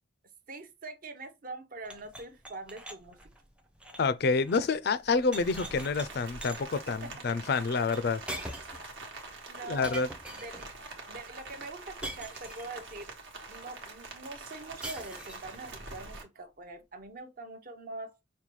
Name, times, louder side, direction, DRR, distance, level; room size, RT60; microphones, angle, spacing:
voice 1, 0.5-3.2 7.0-7.1 9.5-10.0 10.3-10.7 11.1-13.1 13.5-18.1, right 3 dB, 45° right, 0.7 m, -43 dB
sound 1, 1.8-4.7 5.0-6.1 6.4-6.8 7.9-8.0 8.3-8.9 9.8-10.7 12.0-12.8 14.8-15.6, right 1 dB, 5° right, 0.5 m, -43 dB
voice 2, 4.0-8.2 9.6-10.1, left 4 dB, 55° left, 0.4 m, -28 dB
Rain, 5.3-16.2, right 3 dB, 70° right, 1.2 m, -45 dB
5.5 x 2.2 x 3.0 m
head